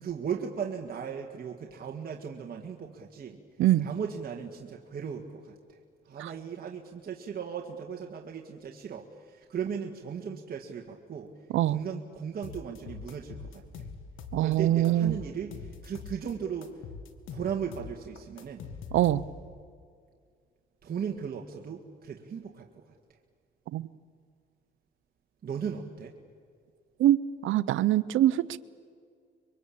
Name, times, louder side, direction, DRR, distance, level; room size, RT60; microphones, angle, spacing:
voice 1, 0.0-3.4 3.7-5.8 6.1-11.3 11.6-13.9 14.4-16.8 17.3-18.7 20.8-22.7 25.4-26.1, right 7 dB, 50° right, 1 dB, 1.9 m, -37 dB
sound 1, 12.4-14.6 14.8-16.3 16.6-19.6, left 5 dB, 80° left, 2.2 m, -43 dB
voice 2, 14.3-15.2 18.9-19.2 23.7-23.8 27.0-27.2 27.4-28.6, right 13 dB, 80° right, 17 dB, 0.8 m, -23 dB
25.5 x 23.5 x 8.6 m, 2.1 s
cardioid pair, 90°, 20 cm